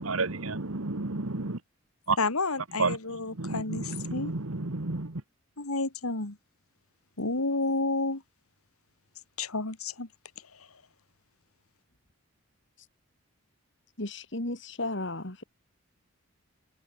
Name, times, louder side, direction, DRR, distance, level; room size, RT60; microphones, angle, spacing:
voice 1, 0.0-1.6 2.1-2.2 2.8-5.2, right 3 dB, 75° right, 1.7 m, -31 dB
voice 2, 2.2-3.8 4.1-4.3 5.6-6.4 7.2-8.2 9.4-10.1, left 3 dB, 90° left, 2.5 m, -30 dB
voice 3, 14.0-15.4, left 2 dB, 55° left, 2.7 m, -34 dB
head